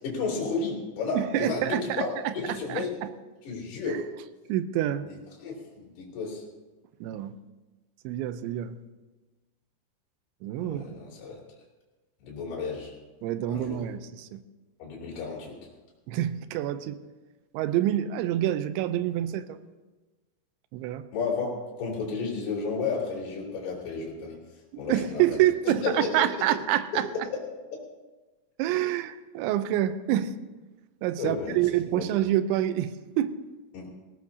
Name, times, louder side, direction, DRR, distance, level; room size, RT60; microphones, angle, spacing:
voice 1, 0.0-2.9 3.4-4.0 5.1-6.4 10.6-11.4 12.2-12.9 13.5-13.8 14.8-15.6 21.1-21.5 21.8-24.4 24.8-25.2 25.7-26.3 26.9-27.4 27.7-27.8 31.2-31.6 31.9-32.0 33.7-33.9, left 4 dB, 65° left, 5.0 m, -32 dB
voice 2, 1.2-2.8 3.9-4.0 4.5-5.1 7.0-7.3 8.0-8.8 10.4-10.8 13.2-14.4 16.1-17.0 17.5-19.6 20.7-21.0 24.7-27.1 28.6-30.3 31.0-32.9 33.2-33.4, right 12 dB, 85° right, 3.0 m, -27 dB
18.5 x 17.5 x 2.7 m
omnidirectional pair, 5.3 m